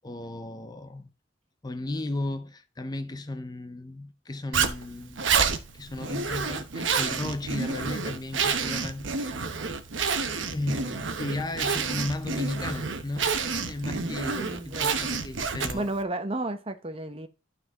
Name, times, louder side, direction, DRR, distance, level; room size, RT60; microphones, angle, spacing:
voice 1, 0.0-1.1 1.6-5.3 5.7-9.3 10.5-15.9, left 2 dB, 20° left, 0.5 m, -35 dB
Zipper (clothing), 4.5-16.0, right 5 dB, 85° right, 1.0 m, -29 dB
voice 2, 14.3-15.0 15.7-17.3, right 2 dB, 30° right, 0.8 m, -32 dB
12.0 x 4.2 x 3.5 m
head